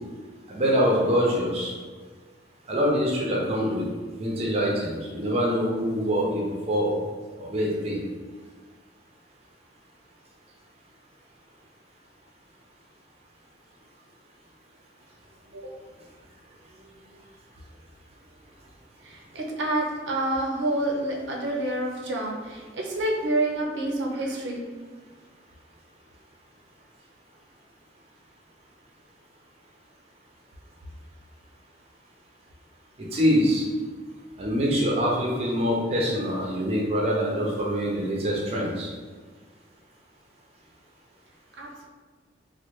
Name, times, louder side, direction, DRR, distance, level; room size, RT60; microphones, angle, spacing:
voice 1, 0.5-1.7 2.7-3.9 4.1-7.0 7.4-8.0 33.1-33.6 34.4-38.9, equal, 35° right, -3 dB, 0.5 m, -24 dB
voice 2, 19.0-24.6 41.6-41.9, right 1 dB, 85° right, -1 dB, 0.6 m, -28 dB
3.2 x 2.1 x 3.1 m, 1.4 s
head